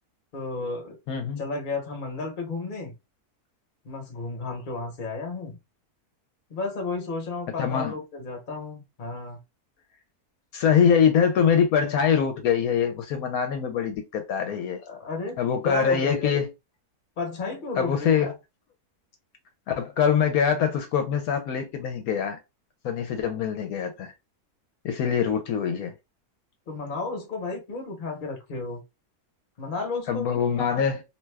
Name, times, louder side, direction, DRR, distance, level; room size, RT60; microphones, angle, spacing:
voice 1, 0.3-2.9 3.8-5.6 6.5-9.4 14.9-16.4 17.2-18.3 25.0-25.4 26.7-28.8 29.6-30.4, left 3 dB, 40° left, 0.9 m, -33 dB
voice 2, 1.1-1.4 7.6-7.9 10.5-14.8 15.4-16.5 17.8-18.3 19.7-22.4 22.8-24.1 24.8-25.9 30.1-31.0, left 7 dB, 75° left, 1.0 m, -23 dB
2.7 x 2.3 x 3.3 m
omnidirectional pair, 1.6 m